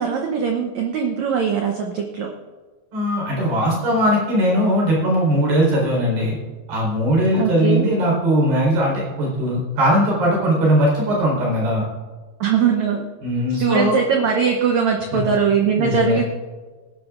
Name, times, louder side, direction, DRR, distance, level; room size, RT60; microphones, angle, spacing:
voice 1, 0.0-2.3 7.3-7.9 12.4-13.0 13.6-16.2, right 6 dB, 90° right, 2 dB, 1.6 m, -20 dB
voice 2, 2.9-6.4 6.7-11.9 13.2-14.0 15.8-16.2, equal, 70° right, -3 dB, 6.1 m, -19 dB
19.5 x 11.0 x 2.5 m, 1.4 s
omnidirectional pair, 4.6 m